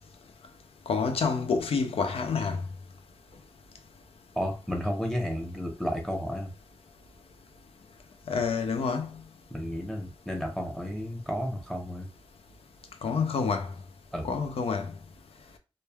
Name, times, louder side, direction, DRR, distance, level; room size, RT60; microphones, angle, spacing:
voice 1, 0.9-2.6 8.3-9.1 13.0-13.7 14.2-14.9, left 5 dB, 90° left, 0.4 m, -28 dB
voice 2, 4.4-6.5 9.5-12.1 14.1-14.3, equal, 5° left, 0.8 m, -32 dB
3.1 x 2.1 x 2.2 m
wide cardioid pair, 70°, 10 cm